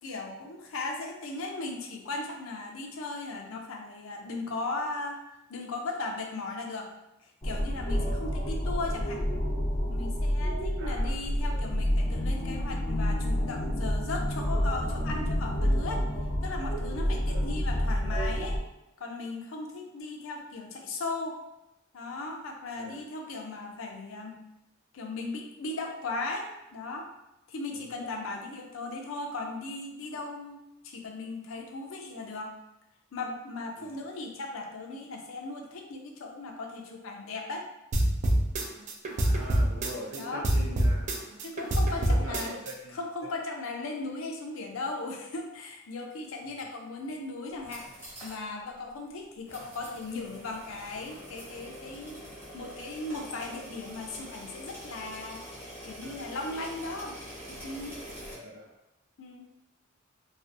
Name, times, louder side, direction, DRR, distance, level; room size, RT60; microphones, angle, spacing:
voice 1, 0.0-5.2 5.5-6.9 7.2-9.2 9.8-16.1 16.4-18.6 19.0-21.4 21.9-24.4 24.9-27.1 27.5-32.5 33.1-37.7 40.2-40.5 41.4-42.6 42.9-47.8 48.2-52.2 52.5-57.2 57.5-58.0 59.2-59.5, left 3 dB, 80° left, 2 dB, 0.5 m, -37 dB
sound 1, 7.4-18.6, equal, 25° left, 0.4 m, -29 dB
voice 2, 10.8-11.2 11.5-11.7 17.3-17.5 22.8-23.0 27.7-28.1 33.8-34.0 39.1-41.1 41.9-43.0 56.0-56.1 58.3-58.7, equal, 80° right, -1 dB, 0.7 m, -43 dB
sound 2, 37.9-40.2 40.4-42.7, right 1 dB, 35° right, 0.3 m, -26 dB
sound 3, 47.5-48.4 48.8-48.9 49.5-58.3, equal, 10° right, 0.9 m, -45 dB
2.4 x 2.4 x 2.5 m, 0.91 s
head